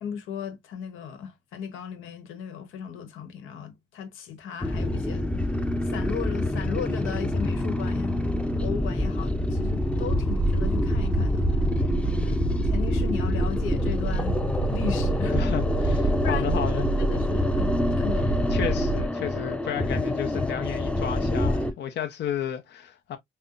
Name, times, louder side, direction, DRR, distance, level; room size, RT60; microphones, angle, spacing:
voice 1, 0.0-5.5 5.8-8.2 8.6-11.6 12.0-14.4 14.7-15.4 16.2-16.6 17.0-18.3, left 7 dB, 90° left, 1.1 m, -36 dB
sound 1, 4.6-21.7, left 1 dB, 5° left, 0.6 m, -26 dB
sound 2, 9.9-19.1, right 5 dB, 80° right, 0.4 m, -30 dB
voice 2, 12.2-12.6 15.3-16.9 18.5-23.2, left 9 dB, 60° left, 0.7 m, -32 dB
5.4 x 2.1 x 2.5 m
cardioid pair, 90°, 20 cm